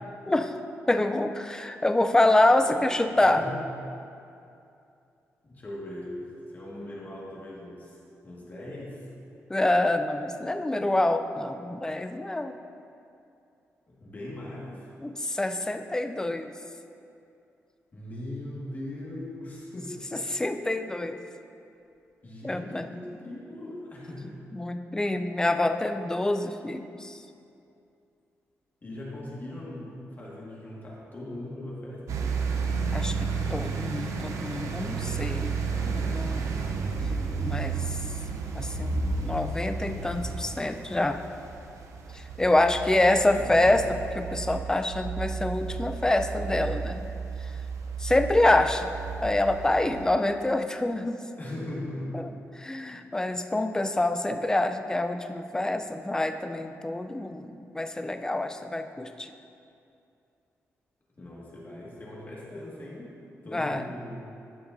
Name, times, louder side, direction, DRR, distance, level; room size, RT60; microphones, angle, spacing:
voice 1, 0.9-3.4 9.5-12.5 15.0-16.5 20.1-21.2 22.4-22.8 24.5-27.2 32.9-35.5 35.8-36.5 37.4-38.0 38.5-41.2 42.1-43.8 44.1-47.1 48.0-48.9 49.2-51.2 52.1-52.2 52.6-59.3 63.5-63.9, left 2 dB, 10° left, 7 dB, 0.4 m, -26 dB
voice 2, 3.2-3.6 5.4-8.0 8.2-9.1 13.9-14.9 17.9-20.1 22.2-24.4 28.8-32.5 42.5-43.7 51.4-52.2 61.2-63.1 63.4-64.2, left 1 dB, 35° left, -5 dB, 1.8 m, -40 dB
sound 1, 32.1-50.1, right 5 dB, 80° right, 0.6 m, -32 dB
12.5 x 5.9 x 2.6 m, 2.6 s
cardioid pair, 85°, 5 cm